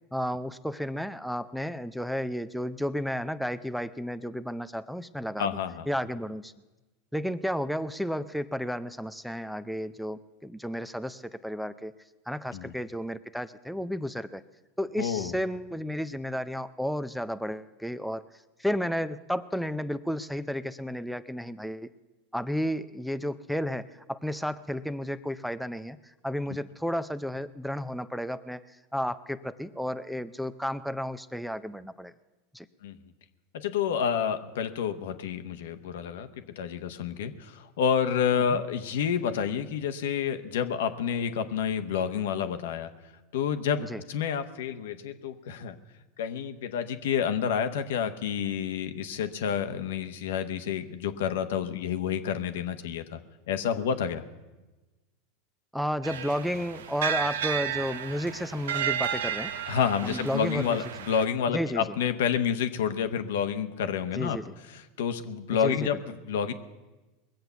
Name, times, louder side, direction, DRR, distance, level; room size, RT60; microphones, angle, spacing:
voice 1, 0.1-5.5 5.9-6.5 7.1-11.9 12.3-14.4 14.8-18.2 18.6-21.9 22.3-26.0 26.2-32.1 32.5-32.7 43.9-44.0 55.7-59.5 60.0-60.8 61.5-61.8 64.1-64.5 65.6-65.9, equal, ahead, 13 dB, 0.5 m, -32 dB
voice 2, 5.4-5.9 12.5-12.7 15.0-15.4 32.8-33.0 33.5-36.3 36.6-42.9 43.3-45.7 46.2-53.2 53.5-54.2 59.7-64.4 64.7-66.5, left 7 dB, 80° left, 9 dB, 1.0 m, -29 dB
sound 1, 56.0-61.2, right 9 dB, 85° right, 0.7 m, -33 dB
20.5 x 7.8 x 7.0 m, 1.1 s
hypercardioid pair, 105°, 0 cm